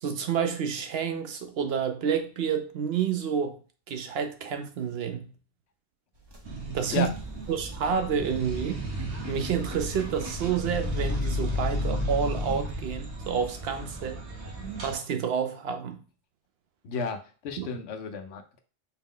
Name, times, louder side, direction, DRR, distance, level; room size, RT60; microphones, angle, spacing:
voice 1, 0.0-3.6 3.9-5.3 6.7-7.1 7.5-8.9 9.3-14.2 14.8-16.0 17.6-17.7, right 7 dB, 70° right, 0.8 m, -29 dB
sound 1, 6.1-12.6, equal, 30° right, 0.6 m, -43 dB
sound 2, 6.4-14.9, equal, 90° right, 1.3 m, -33 dB
voice 2, 16.8-18.6, left 5 dB, 75° left, 0.9 m, -33 dB
4.4 x 2.1 x 3.7 m
omnidirectional pair, 1.1 m